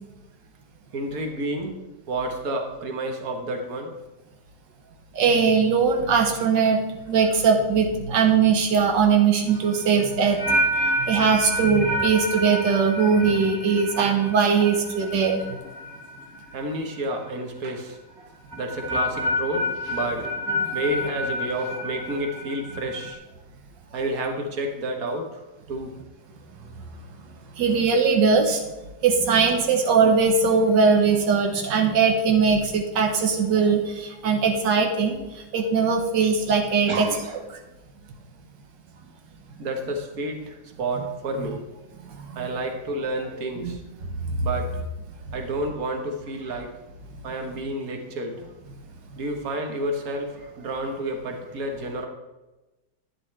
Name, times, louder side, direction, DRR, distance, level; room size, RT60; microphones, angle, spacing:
voice 1, 0.9-1.8 2.1-3.9 13.1-13.6 16.5-20.3 20.7-23.2 23.9-25.9 36.9-37.4 39.6-41.7 42.3-43.8 44.4-44.7 45.3-46.7 47.2-48.5 49.2-52.1, right 1 dB, 55° right, 4 dB, 1.7 m, -30 dB
voice 2, 5.1-10.4 11.0-15.4 27.6-28.6 29.0-35.2 35.5-37.1 42.4-42.5 43.6-43.8, right 5 dB, 90° right, 2 dB, 1.7 m, -20 dB
sound 1, 9.5-16.6 16.9-17.3 18.5-23.1, equal, ahead, 1.5 m, -29 dB
11.5 x 9.7 x 3.3 m, 1.1 s
omnidirectional pair, 1.9 m